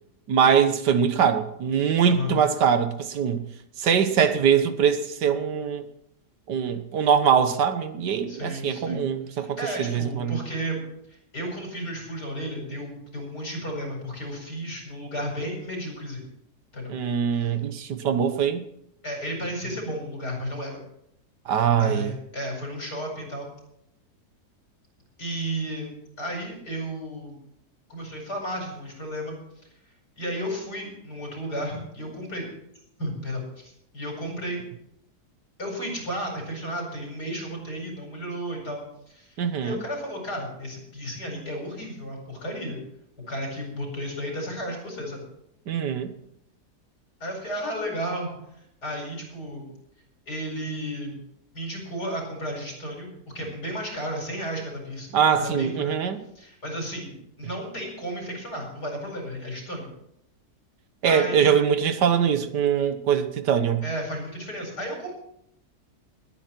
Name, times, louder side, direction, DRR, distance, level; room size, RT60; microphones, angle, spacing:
voice 1, 0.3-3.4 3.8-5.8 6.5-10.4 16.9-18.6 21.5-22.1 39.4-39.8 45.7-46.1 55.1-56.2 61.0-63.8, right 7 dB, 85° right, 1.7 m, -22 dB
voice 2, 2.0-2.4 8.3-9.0 9.3-10.8 11.1-16.3 16.7-17.0 17.4-17.5 19.0-20.8 21.8-23.5 25.2-27.4 27.9-29.4 30.2-32.5 33.0-34.6 35.6-38.8 39.1-42.8 43.3-45.2 47.2-48.3 48.8-49.7 50.3-51.2 51.5-53.1 53.3-56.0 56.4-59.9 61.0-61.6 63.8-65.1, equal, 70° left, 5.4 m, -33 dB
20.5 x 9.0 x 4.5 m
omnidirectional pair, 1.8 m